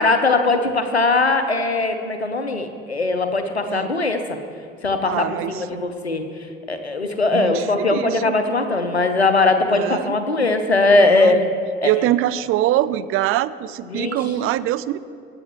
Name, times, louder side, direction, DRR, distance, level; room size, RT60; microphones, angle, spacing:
voice 1, 0.0-4.2 4.8-6.2 6.7-11.4 11.8-11.9 13.9-14.2, left 3 dB, 90° left, 8 dB, 0.8 m, -20 dB
voice 2, 5.0-5.8 7.3-8.4 9.7-10.1 11.0-11.5 11.8-15.0, right 14 dB, 45° right, 15 dB, 0.5 m, -24 dB
22.0 x 8.8 x 3.1 m, 2.4 s
figure-of-eight pair, 55°, 31 cm